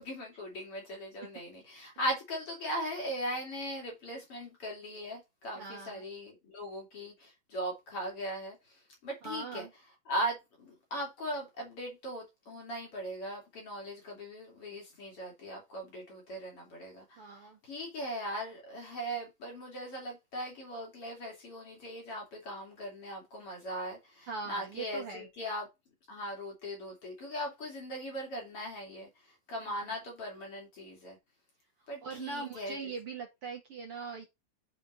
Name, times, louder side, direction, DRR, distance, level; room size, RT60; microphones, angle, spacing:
voice 1, 0.0-9.7 10.1-25.7 26.1-31.2 31.9-32.9, equal, 45° left, 3.4 m, -39 dB
voice 2, 5.6-6.0 9.2-9.7 17.2-17.6 24.3-25.3 32.0-34.3, right 4 dB, 50° right, 2.1 m, -41 dB
8.2 x 5.0 x 4.0 m
omnidirectional pair, 3.8 m